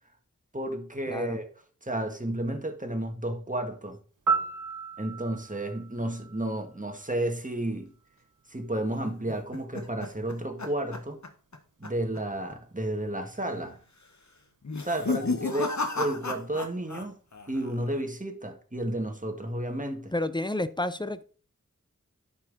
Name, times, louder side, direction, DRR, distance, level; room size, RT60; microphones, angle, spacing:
voice 1, 0.5-1.5 1.8-4.0 5.0-7.9 8.5-11.2 11.8-13.8 14.8-17.1 17.5-20.1, right 1 dB, 25° right, 1.7 m, -32 dB
voice 2, 1.1-1.4 20.1-21.2, left 1 dB, 15° left, 0.6 m, -30 dB
Piano, 4.3-7.2 15.3-15.5, right 5 dB, 70° right, 1.0 m, -33 dB
sound 1, 9.0-11.6 11.8-12.2 12.5-12.6 13.3-13.7 14.6-17.0 17.3-17.9, left 3 dB, 60° left, 1.2 m, -33 dB
10.5 x 5.7 x 4.0 m
wide cardioid pair, 40°, 32 cm